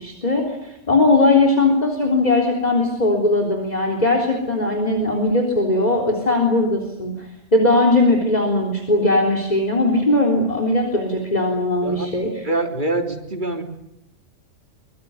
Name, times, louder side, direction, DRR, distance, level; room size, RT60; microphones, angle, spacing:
voice 1, 0.0-12.5, left 2 dB, 35° left, 3 dB, 3.7 m, -19 dB
voice 2, 12.4-13.6, right 2 dB, 40° right, 4 dB, 3.4 m, -24 dB
24.0 x 23.0 x 9.6 m, 0.79 s
omnidirectional pair, 1.3 m